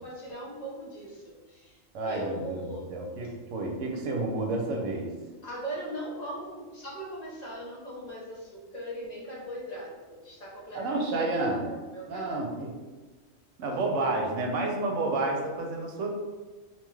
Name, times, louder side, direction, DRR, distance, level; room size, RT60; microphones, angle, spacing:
voice 1, 0.0-1.8 2.0-3.0 5.4-11.0 11.4-12.7, right 1 dB, 45° left, -5 dB, 0.5 m, -40 dB
voice 2, 1.9-2.6 2.9-5.1 10.7-11.7 12.1-12.7 13.6-16.1, right 2 dB, 75° right, 0 dB, 0.9 m, -30 dB
2.8 x 2.2 x 3.1 m, 1.3 s
omnidirectional pair, 1.4 m